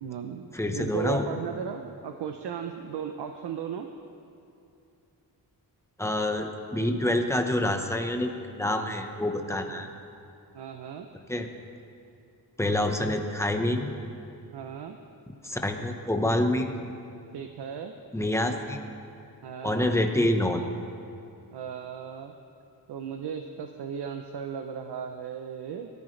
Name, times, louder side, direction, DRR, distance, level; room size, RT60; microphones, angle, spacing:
voice 1, 0.0-3.9 9.7-9.9 10.5-11.1 14.5-15.0 17.3-17.9 19.4-19.9 21.5-22.3 22.9-25.9, right 7 dB, 75° right, 5 dB, 0.8 m, -36 dB
voice 2, 0.5-1.3 6.0-9.9 11.3-11.5 12.6-13.9 15.4-16.8 18.1-18.8 19.6-20.7, left 1 dB, 5° left, 4 dB, 1.0 m, -27 dB
22.0 x 14.0 x 3.3 m, 2.7 s
wide cardioid pair, 135°, 40 cm